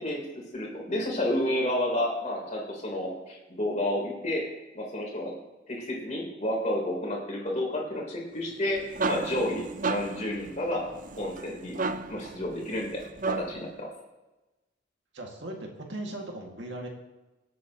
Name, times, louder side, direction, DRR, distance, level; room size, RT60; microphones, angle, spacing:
voice 1, 0.0-4.5 4.7-5.3 5.7-10.9 11.2-11.8 12.1-13.9, left 1 dB, 35° left, -2 dB, 3.4 m, -31 dB
sound 1, 8.5-13.7, right 3 dB, 40° right, 0.5 m, -34 dB
voice 2, 15.1-16.9, right 1 dB, 60° right, 1 dB, 2.0 m, -38 dB
24.5 x 8.4 x 2.9 m, 1.1 s
head